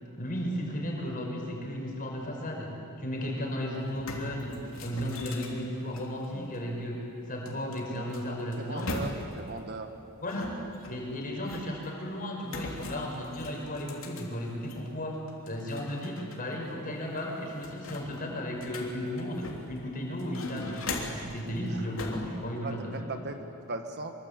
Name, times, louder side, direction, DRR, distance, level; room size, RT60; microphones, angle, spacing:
voice 1, 0.1-8.9 10.2-10.6 10.8-23.2, equal, 40° left, 0 dB, 5.7 m, -35 dB
sound 1, 3.4-3.5 3.8-6.6 7.5-9.5 10.3-11.9 12.5-14.9 15.3-16.4 16.7-16.8 17.2-19.8 20.2-21.3 22.0-22.3, left 2 dB, 65° left, 3.4 m, -40 dB
voice 2, 8.6-9.9 21.7-21.9 22.6-24.1, right 2 dB, 50° right, 6 dB, 1.7 m, -38 dB
24.0 x 23.5 x 8.4 m, 2.7 s
head